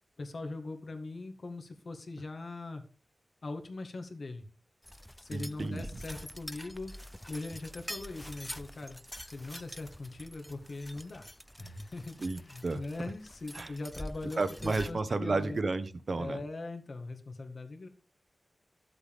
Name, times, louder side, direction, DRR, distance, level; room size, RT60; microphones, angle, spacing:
voice 1, 0.2-2.8 3.4-4.4 5.2-6.9 7.3-9.0 9.3-11.3 11.6-15.6 16.2-17.9, left 2 dB, 60° left, 5 dB, 1.8 m, -41 dB
sound 1, 4.8-14.9, equal, 5° left, 0.4 m, -46 dB
voice 2, 5.3-5.9 12.2-12.8 13.5-13.7 14.4-16.4, right 3 dB, 55° right, 12 dB, 1.1 m, -32 dB
13.5 x 7.9 x 3.6 m, 0.39 s
wide cardioid pair, 90°, 0 cm